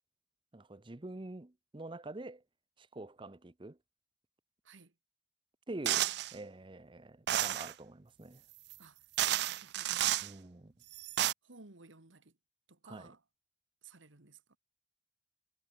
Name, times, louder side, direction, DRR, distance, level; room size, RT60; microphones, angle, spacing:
voice 1, 0.5-2.4 2.8-3.8 5.7-8.4 10.2-10.7 12.9-13.1, right 2 dB, 25° right, 0.7 m, -46 dB
sound 1, 5.9-6.3 7.3-7.7 8.7-8.8 9.2-10.3 10.9-11.3, right 13 dB, 60° right, 0.4 m, -31 dB
voice 2, 9.3-10.1 11.4-12.3 12.7-13.2 13.8-14.6, right 3 dB, 85° right, 2.1 m, -57 dB
head